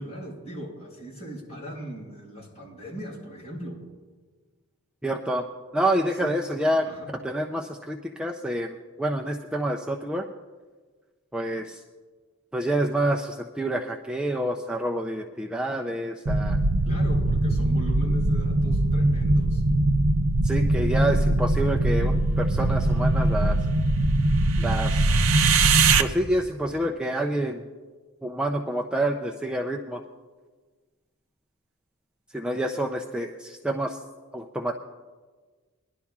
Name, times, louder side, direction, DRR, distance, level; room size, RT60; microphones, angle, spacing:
voice 1, 0.0-3.8 6.1-6.4 6.8-7.1 16.8-19.6, right 1 dB, 30° left, -4 dB, 4.5 m, -39 dB
voice 2, 5.0-5.5 5.7-6.9 7.2-10.3 11.3-11.8 12.5-16.6 20.4-23.6 24.6-25.1 26.0-27.7 28.2-30.0 32.3-34.0 34.3-34.8, right 1 dB, 5° right, 1 dB, 0.4 m, -28 dB
sound 1, 16.3-26.0, right 2 dB, 65° right, 0.6 m, -21 dB
21.0 x 11.0 x 2.4 m, 1.4 s
head